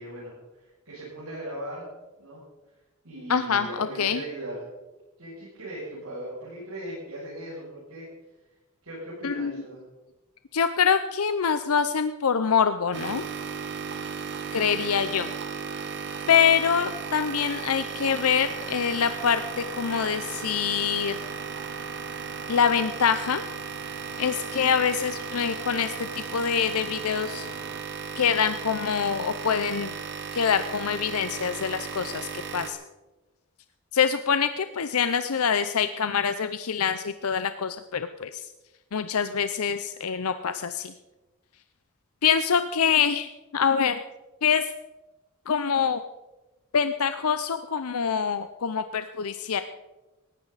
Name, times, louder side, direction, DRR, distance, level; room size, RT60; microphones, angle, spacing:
voice 1, 0.0-1.9 2.2-2.4 3.0-4.6 5.2-8.1 8.8-9.8, right 1 dB, 90° right, -9 dB, 7.3 m, -38 dB
voice 2, 3.3-4.2 9.2-9.5 10.5-13.2 14.5-15.3 16.3-21.2 22.5-23.4 24.2-27.5 28.2-29.9 30.3-32.8 33.9-38.5 38.9-40.9 42.2-44.0 44.4-44.7 45.5-46.0 46.7-49.6, left 7 dB, 80° left, 10 dB, 0.6 m, -25 dB
sound 1, 12.9-32.7, right 6 dB, 55° right, 1.4 m, -36 dB
sound 2, 18.4-27.8, right 3 dB, 70° right, 1.1 m, -46 dB
19.0 x 15.5 x 4.1 m, 1.1 s
head